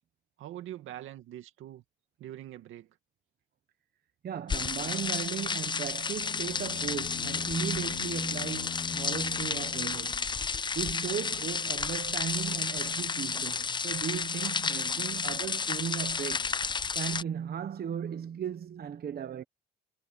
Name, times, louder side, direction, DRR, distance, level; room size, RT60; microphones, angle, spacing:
voice 1, 0.4-1.8 2.2-3.0, right 12 dB, 85° right, 2.3 m, -43 dB
voice 2, 4.2-10.3 10.7-16.5 16.9-19.4, right 8 dB, 50° right, 1.0 m, -36 dB
sound 1, 4.5-17.2, left 5 dB, 25° left, 0.5 m, -32 dB
sound 2, 6.2-10.6, left 8 dB, 55° left, 1.6 m, -42 dB
cardioid pair, 90°, 20 cm